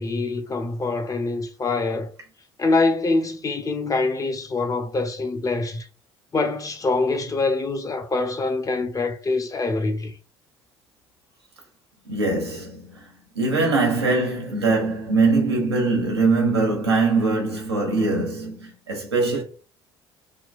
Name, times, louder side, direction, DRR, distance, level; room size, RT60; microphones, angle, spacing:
voice 1, 0.0-2.1 2.6-5.9 6.3-10.1, left 3 dB, 25° left, 0.7 m, -24 dB
voice 2, 12.1-19.4, right 3 dB, 90° right, 0.7 m, -22 dB
3.6 x 2.2 x 2.4 m
figure-of-eight pair, 55°, 13 cm